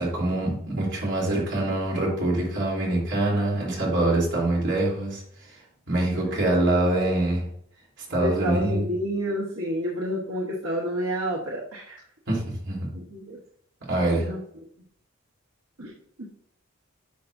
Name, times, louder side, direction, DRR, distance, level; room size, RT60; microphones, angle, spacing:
voice 1, 0.0-5.2 5.5-5.6 5.9-7.4 8.1-8.8 12.3-12.9 13.9-14.3, right 1 dB, 55° right, -3 dB, 3.4 m, -24 dB
voice 2, 8.1-12.0 12.9-13.4 14.2-14.4 15.8-15.9 16.2-16.3, equal, 80° right, -3 dB, 1.2 m, -29 dB
10.5 x 5.7 x 2.7 m, 0.68 s
head